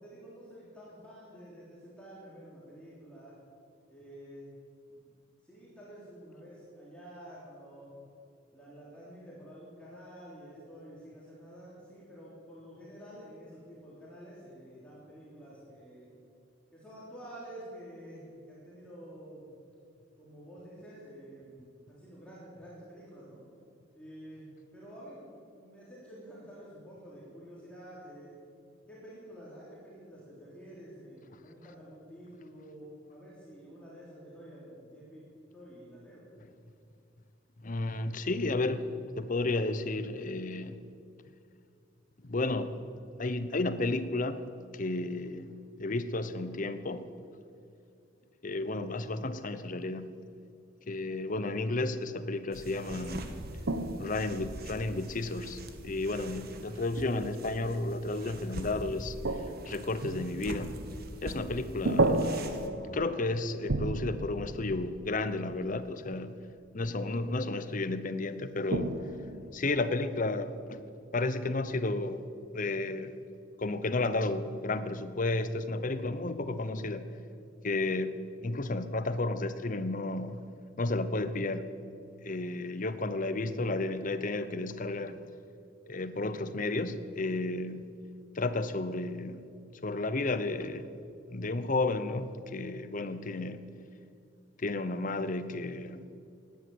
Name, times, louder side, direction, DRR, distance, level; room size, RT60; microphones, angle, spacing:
voice 1, 0.0-3.4 3.9-4.5 4.9-5.0 5.4-7.9 8.5-16.1 16.7-19.5 20.2-23.4 23.9-28.3 28.9-35.2 35.5-36.2, equal, 5° left, -8 dB, 3.6 m, -49 dB
voice 2, 37.6-40.8 42.2-42.7 43.2-44.4 44.7-47.1 48.4-50.1 50.9-53.3 54.0-59.2 59.7-60.7 61.2-62.5 62.9-66.3 66.7-69.0 69.5-70.8 71.1-72.2 72.5-73.1 73.6-77.1 77.6-78.1 78.4-80.4 80.8-81.6 82.2-85.2 85.9-87.8 88.3-89.4 89.8-90.9 91.3-93.6 94.6-96.0, left 2 dB, 45° left, 12 dB, 0.8 m, -32 dB
sound 1, 52.5-62.7, right 1 dB, 55° right, 1.4 m, -44 dB
sound 2, 53.7-55.9 57.0-57.5 59.1-61.5 61.8-66.1 68.7-69.6, right 2 dB, 75° right, 0.9 m, -34 dB
17.0 x 10.5 x 8.0 m, 2.5 s
head